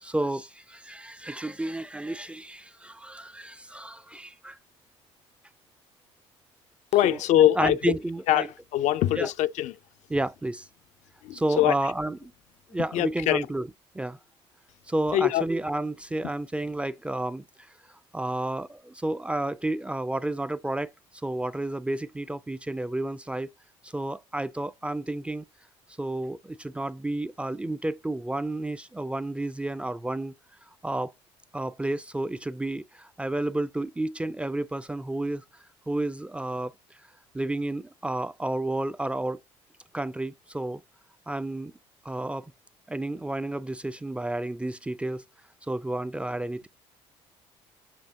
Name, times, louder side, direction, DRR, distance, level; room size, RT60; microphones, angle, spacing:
voice 1, 0.0-4.6 7.0-8.5 9.2-9.3 10.1-10.7 11.3-12.3 12.7-13.7 13.9-14.2 14.9-17.4 17.9-20.9 21.2-23.5 23.8-25.4 26.0-30.3 30.8-31.1 31.5-35.4 35.9-36.7 37.3-39.4 39.9-40.8 41.3-41.7 42.0-42.5 42.9-45.2 45.6-46.7, right 1 dB, 10° right, 0.3 m, -31 dB
voice 2, 6.9-7.8 8.3-8.5 8.7-9.7 11.2-11.7 12.9-13.4 15.1-15.4, left 12 dB, 65° left, 0.4 m, -22 dB
7.4 x 2.7 x 2.6 m
supercardioid pair, 70°, 13 cm